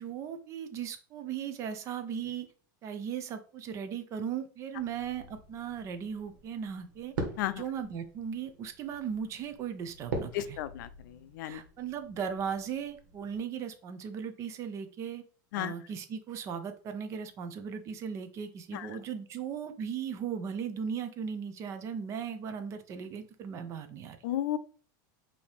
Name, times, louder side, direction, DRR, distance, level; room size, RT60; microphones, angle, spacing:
voice 1, 0.0-2.5 2.8-7.1 7.6-10.6 11.4-15.2 15.5-24.2, right 7 dB, 25° right, 9 dB, 0.5 m, -37 dB
sound 1, 4.7-13.4, right 2 dB, 85° right, 1.4 m, -43 dB
voice 2, 10.3-11.6 15.5-15.7 18.7-18.9 24.2-24.6, left 13 dB, 65° left, 13 dB, 0.4 m, -33 dB
5.1 x 2.8 x 3.3 m, 0.41 s
supercardioid pair, 160°, 11 cm